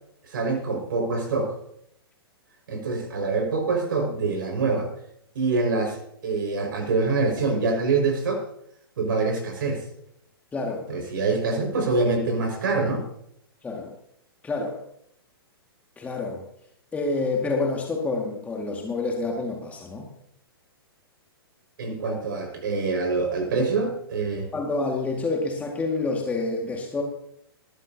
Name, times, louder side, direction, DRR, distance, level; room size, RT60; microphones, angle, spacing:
voice 1, 0.3-1.5 2.7-4.9 5.3-8.4 9.0-9.8 10.9-13.1 21.8-24.5, right 3 dB, 55° right, 3 dB, 5.6 m, -25 dB
voice 2, 10.5-10.9 13.6-14.0 14.4-14.8 16.0-16.5 16.9-20.1 24.5-27.0, left 3 dB, 10° left, 1 dB, 2.1 m, -28 dB
20.0 x 14.5 x 2.9 m, 0.72 s
figure-of-eight pair, 110°, 13 cm